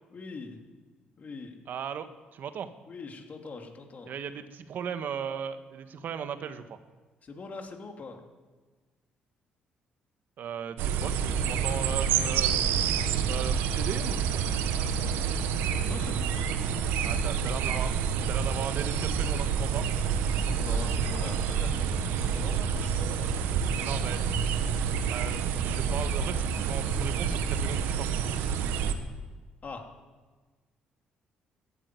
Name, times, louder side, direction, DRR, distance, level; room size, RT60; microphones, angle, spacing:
voice 1, 0.1-0.6 1.2-1.6 2.8-4.1 7.2-8.2 15.9-16.3 20.6-21.9 22.2-23.4 29.6-29.9, left 4 dB, 45° left, 3 dB, 3.0 m, -42 dB
voice 2, 1.7-2.7 4.1-6.8 10.4-12.8 13.3-14.4 17.0-17.9 18.3-19.9 23.6-24.2 25.1-28.2, right 7 dB, 65° right, 10 dB, 1.4 m, -37 dB
sound 1, 10.8-28.9, right 7 dB, 80° right, 1.2 m, -28 dB
14.5 x 9.9 x 9.7 m, 1.3 s
supercardioid pair, 60°, 4 cm